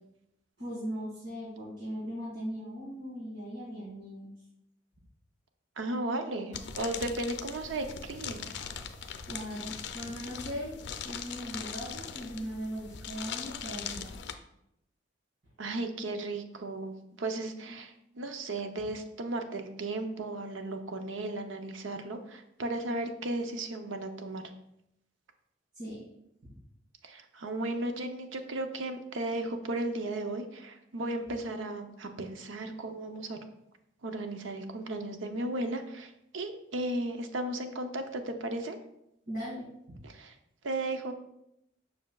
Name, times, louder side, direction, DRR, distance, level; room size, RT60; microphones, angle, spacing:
voice 1, 0.6-4.3 9.0-10.8 11.0-14.1 17.7-17.8 25.7-26.0 26.4-26.6 39.3-40.0, equal, 65° right, -8 dB, 2.3 m, -39 dB
voice 2, 5.8-8.5 15.6-24.4 27.0-33.4 34.0-38.8 40.0-40.3 40.6-41.1, right 2 dB, 85° right, 6 dB, 0.7 m, -35 dB
sound 1, 6.5-14.3, left 7 dB, 65° left, 0.5 m, -40 dB
7.3 x 6.0 x 2.3 m, 0.81 s
head